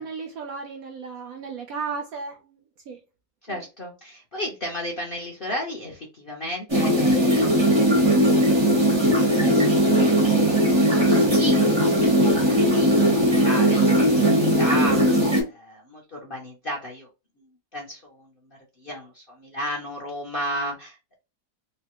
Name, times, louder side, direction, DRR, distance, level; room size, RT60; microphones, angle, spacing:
voice 1, 0.0-2.6 2.9-3.0 3.5-3.6, right 5 dB, 75° right, 0.8 m, -34 dB
voice 2, 3.5-8.3 9.3-9.7 10.2-10.5 10.8-11.6 12.7-17.1 17.4-21.1, equal, 55° left, 0.6 m, -34 dB
sound 1, 6.7-15.4, right 1 dB, 35° right, 0.4 m, -19 dB
3.1 x 2.2 x 2.9 m
omnidirectional pair, 2.0 m